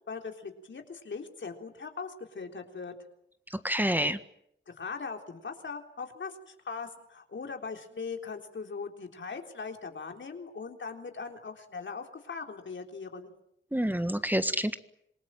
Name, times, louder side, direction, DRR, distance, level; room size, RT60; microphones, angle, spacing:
voice 1, 0.1-2.9 4.7-13.3, left 5 dB, 70° left, 4 dB, 3.8 m, -40 dB
voice 2, 3.6-4.2 13.7-14.7, equal, 10° right, 10 dB, 1.6 m, -27 dB
27.0 x 20.0 x 9.0 m, 0.76 s
cardioid pair, 60°, 20 cm